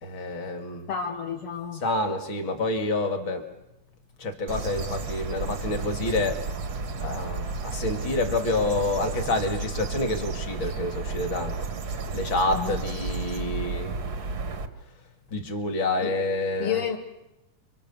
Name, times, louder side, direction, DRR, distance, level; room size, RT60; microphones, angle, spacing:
voice 1, 0.0-0.9 1.8-3.5 4.2-6.4 7.0-14.0 15.3-16.8, left 2 dB, 40° left, 6 dB, 2.5 m, -28 dB
voice 2, 0.9-1.8 12.5-12.8 16.0-16.1 16.6-17.0, left 8 dB, 60° left, 1 dB, 1.7 m, -30 dB
sound 1, 4.5-14.7, right 3 dB, 70° right, 0.9 m, -32 dB
29.0 x 25.0 x 7.0 m, 0.95 s
omnidirectional pair, 4.0 m